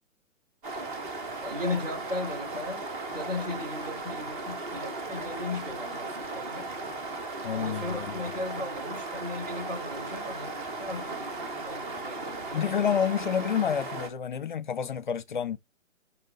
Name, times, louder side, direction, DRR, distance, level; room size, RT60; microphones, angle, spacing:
sound 1, 0.6-14.1, right 3 dB, 40° right, 2.5 m, -36 dB
voice 1, 1.4-6.7 7.5-12.7, left 2 dB, 70° right, 4.6 m, -37 dB
voice 2, 7.4-8.2 12.5-15.6, left 8 dB, 40° left, 0.6 m, -29 dB
7.3 x 5.9 x 2.6 m
hypercardioid pair, 150°, 39 cm